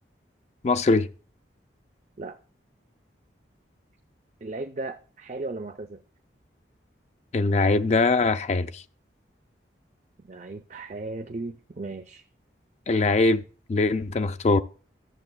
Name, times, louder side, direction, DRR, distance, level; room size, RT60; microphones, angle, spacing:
voice 1, 0.6-1.1 7.3-8.8 12.9-13.4 13.7-14.6, left 3 dB, 35° left, 0.4 m, -22 dB
voice 2, 4.4-6.0 10.3-12.2, right 2 dB, 40° right, 0.4 m, -36 dB
12.5 x 7.3 x 2.2 m
head